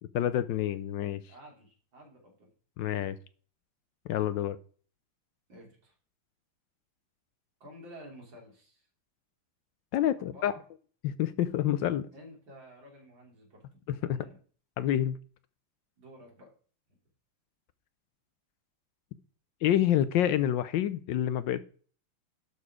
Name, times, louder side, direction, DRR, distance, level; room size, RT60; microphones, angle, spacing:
voice 1, 0.1-1.2 2.8-3.2 4.1-4.6 9.9-10.5 11.0-12.1 14.0-14.2 14.8-15.2 19.6-21.6, left 11 dB, 75° left, 1.1 m, -27 dB
voice 2, 1.3-2.5 5.5-5.9 7.6-8.9 10.2-10.6 12.1-13.6 14.0-14.4 16.0-16.5, equal, 60° right, 4.0 m, -51 dB
12.0 x 4.3 x 4.8 m
omnidirectional pair, 2.4 m